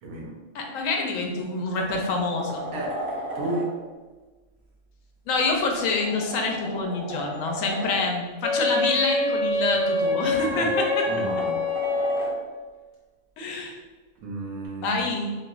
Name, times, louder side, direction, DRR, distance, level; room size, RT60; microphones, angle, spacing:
voice 1, 0.0-0.4 2.7-3.0 3.3-3.7 10.5-10.7 11.1-11.6 14.2-15.0, right 2 dB, 80° right, -1 dB, 1.1 m, -32 dB
voice 2, 0.5-2.7 5.3-11.1 13.4-13.8 14.8-15.3, left 3 dB, 70° left, 2 dB, 1.0 m, -26 dB
sound 1, 0.8-0.9 1.4-3.7 5.3-8.1 9.5-12.4 14.6-14.7, right 1 dB, 55° right, 0.8 m, -36 dB
Wind instrument woodwind instrument, 8.4-12.5, left 2 dB, 40° left, 0.8 m, -25 dB
4.5 x 2.0 x 2.4 m, 1.3 s
omnidirectional pair, 1.5 m